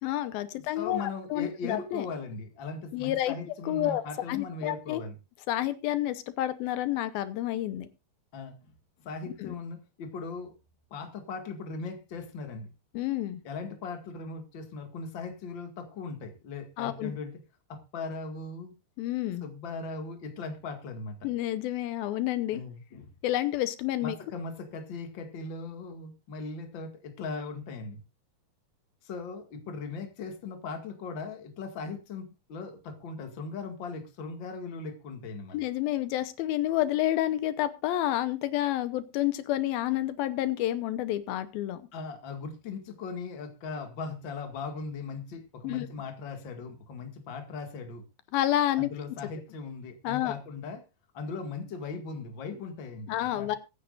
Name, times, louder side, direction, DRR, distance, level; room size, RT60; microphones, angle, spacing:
voice 1, 0.0-2.1 2.9-4.0 4.3-5.0 5.5-7.9 9.4-9.5 12.9-13.4 16.8-17.1 19.0-19.4 21.2-22.6 23.2-24.2 35.5-41.8 45.6-45.9 48.3-48.9 50.0-50.3 53.1-53.6, left 13 dB, 85° left, 2.7 m, -29 dB
voice 2, 0.5-5.2 8.3-8.7 9.0-10.5 10.9-12.7 13.4-17.3 17.7-18.7 19.4-21.3 22.5-23.1 24.0-28.0 29.0-35.6 41.9-48.0 48.7-50.8 51.1-53.6, left 4 dB, 40° left, 2.2 m, -39 dB
22.5 x 9.6 x 2.5 m
omnidirectional pair, 4.2 m